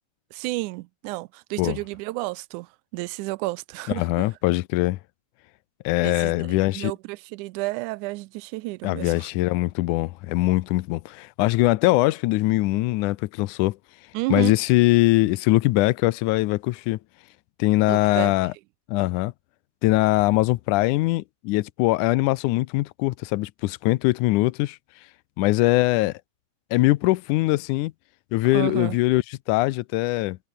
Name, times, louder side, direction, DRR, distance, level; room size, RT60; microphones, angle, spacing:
voice 1, 0.3-4.3 6.0-9.3 14.1-14.5 17.9-18.3 28.5-29.0, right 21 dB, 85° right, 2.0 m, -31 dB
voice 2, 4.0-5.0 5.9-6.9 8.8-13.8 14.3-17.0 17.6-18.5 18.9-19.3 19.8-24.8 25.4-26.1 26.7-27.9 28.3-30.4, left 19 dB, 85° left, 2.2 m, -22 dB
omnidirectional pair, 3.5 m